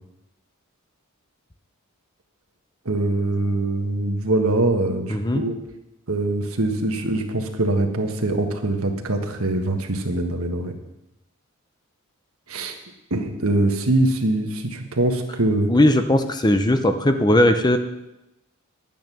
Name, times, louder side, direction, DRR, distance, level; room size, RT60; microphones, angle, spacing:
voice 1, 2.8-5.5 6.1-10.7 12.5-12.8 13.1-15.7, right 2 dB, 70° right, 4 dB, 1.5 m, -23 dB
voice 2, 5.1-5.4 15.7-17.8, left 1 dB, 20° left, 8 dB, 0.6 m, -18 dB
11.0 x 9.2 x 6.0 m, 0.93 s
head